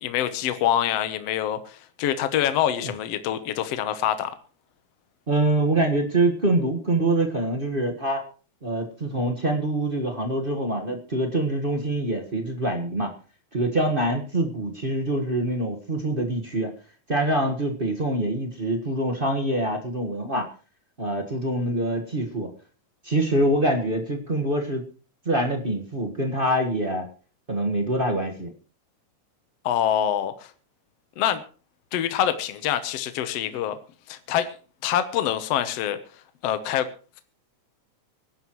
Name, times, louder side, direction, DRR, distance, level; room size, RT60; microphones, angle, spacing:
voice 1, 0.0-4.3 29.6-30.5 31.2-31.4 31.9-33.8 34.1-34.6 34.8-36.0 36.4-36.9, left 10 dB, 65° left, 10 dB, 1.9 m, -25 dB
voice 2, 5.3-8.2 8.6-13.1 13.5-16.7 17.1-20.5 21.0-22.5 23.0-24.8 25.2-27.0 27.5-28.5, right 1 dB, 30° right, 3 dB, 1.0 m, -25 dB
24.5 x 11.0 x 3.1 m, 0.38 s
omnidirectional pair, 3.3 m